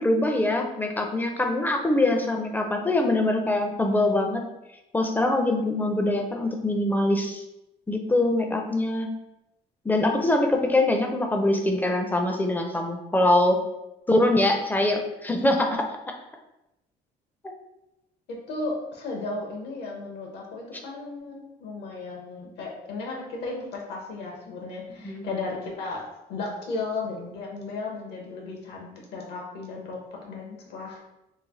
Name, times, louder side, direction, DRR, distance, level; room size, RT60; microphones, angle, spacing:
voice 1, 0.0-4.4 4.9-7.4 7.9-9.1 9.8-13.6 14.1-15.8 25.0-25.3, left 1 dB, 10° left, 3 dB, 0.4 m, -23 dB
voice 2, 18.3-26.0 26.3-31.0, left 3 dB, 75° left, -1 dB, 1.0 m, -35 dB
3.2 x 2.2 x 3.7 m, 0.90 s
cardioid pair, 110°, 17 cm